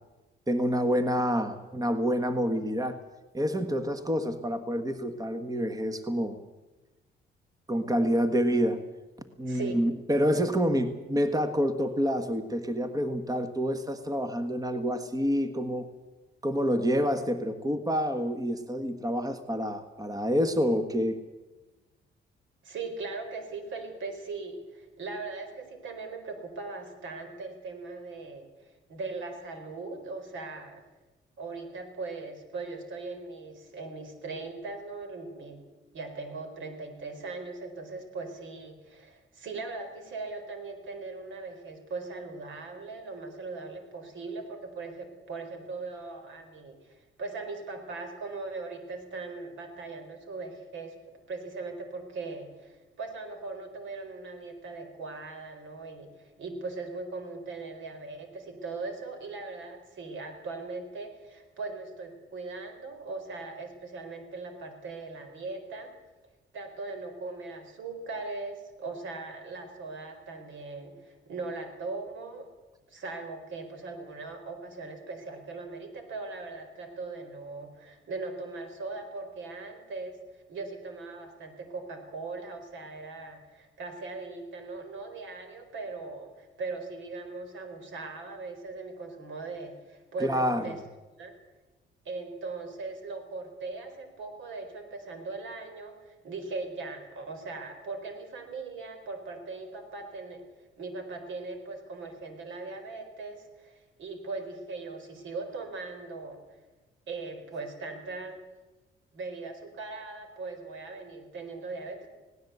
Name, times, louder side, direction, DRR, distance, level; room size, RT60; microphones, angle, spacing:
voice 1, 0.5-3.0 3.3-6.4 7.7-8.8 9.4-15.9 16.4-21.2 90.2-90.7, equal, 20° right, 9 dB, 1.6 m, -28 dB
voice 2, 9.5-9.8 22.6-30.8 31.4-35.6 35.9-51.0 51.3-56.1 56.4-65.9 66.5-72.5 72.9-80.2 80.5-90.8 91.2-91.3 92.0-100.4 100.8-106.4 107.1-108.4 109.1-112.1, right 3 dB, 75° right, 7 dB, 4.4 m, -39 dB
18.5 x 18.0 x 8.2 m, 1.1 s
cardioid pair, 90°, 20 cm